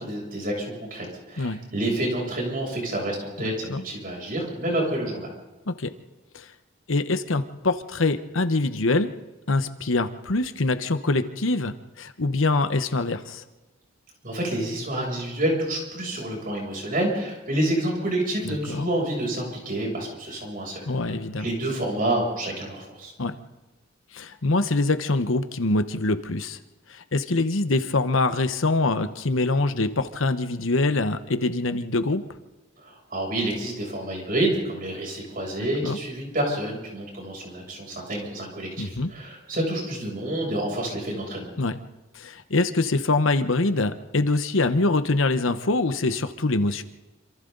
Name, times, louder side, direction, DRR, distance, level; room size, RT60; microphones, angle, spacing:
voice 1, 0.0-5.3 14.2-23.1 32.8-41.5, right 1 dB, 45° right, -1 dB, 7.5 m, -28 dB
voice 2, 3.4-3.8 5.7-5.9 6.3-6.5 6.9-9.1 9.5-13.4 18.4-18.9 20.9-21.5 23.2-23.4 24.1-26.6 26.9-32.2 35.8-36.0 38.8-39.1 41.6-41.8 42.1-46.8, left 2 dB, 80° left, 10 dB, 1.1 m, -24 dB
27.0 x 27.0 x 4.0 m, 1.1 s
head